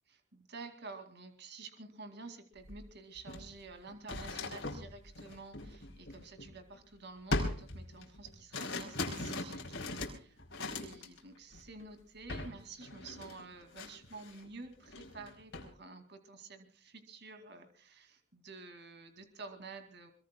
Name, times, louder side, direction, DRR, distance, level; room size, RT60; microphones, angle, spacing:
voice 1, 0.1-20.1, right 3 dB, 55° right, 7 dB, 2.3 m, -50 dB
sound 1, 2.6-2.8 3.2-6.8 7.3-11.2 11.5-11.8 12.3-12.6 12.8-14.5 14.8-15.7, left 2 dB, 55° left, 5.0 m, -40 dB
26.5 x 22.5 x 2.2 m, 0.40 s
head